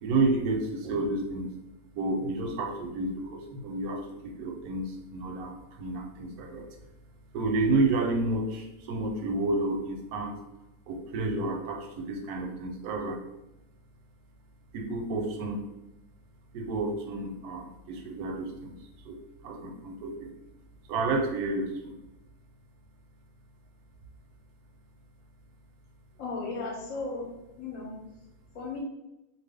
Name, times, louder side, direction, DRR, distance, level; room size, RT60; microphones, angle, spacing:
voice 1, 0.0-1.5 1.9-6.7 7.3-10.4 10.9-13.2 14.7-15.7 16.5-18.8 19.0-19.2 19.4-20.3 20.9-22.0, right 2 dB, 85° right, 3 dB, 1.1 m, -30 dB
voice 2, 26.2-27.3 27.6-28.0 28.5-28.8, left 3 dB, 65° left, -2 dB, 1.0 m, -35 dB
2.6 x 2.2 x 3.4 m, 0.96 s
omnidirectional pair, 1.6 m